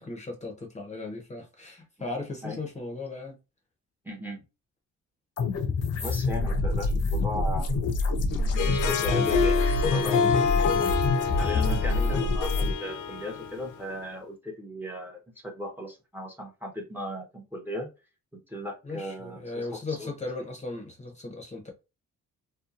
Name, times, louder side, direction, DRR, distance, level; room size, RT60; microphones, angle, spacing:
voice 1, 0.0-3.4 11.9-12.1 18.8-21.7, left 3 dB, 25° left, 0.8 m, -37 dB
voice 2, 4.0-4.4 5.9-7.7 8.4-10.4 11.3-17.9 18.3-20.1, equal, 5° right, 0.8 m, -37 dB
sound 1, 5.4-12.7, left 3 dB, 55° left, 0.7 m, -26 dB
Harp, 8.4-13.9, left 5 dB, 90° left, 0.5 m, -27 dB
2.8 x 2.2 x 2.4 m
cardioid pair, 90°, 30 cm